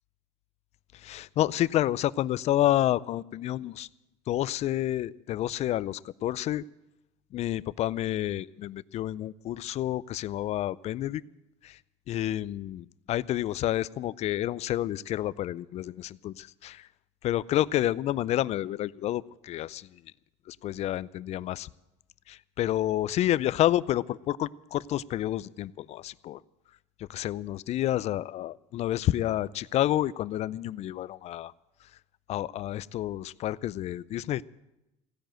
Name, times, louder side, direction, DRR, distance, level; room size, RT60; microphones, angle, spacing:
voice 1, 0.9-3.9 4.3-6.6 7.3-11.2 11.6-11.8 12.1-16.9 17.2-20.0 20.5-21.7 22.3-26.4 27.1-31.5 32.3-34.4, left 13 dB, 55° left, 20 dB, 0.5 m, -29 dB
16.5 x 10.5 x 7.7 m, 0.93 s
supercardioid pair, 90°, 14 cm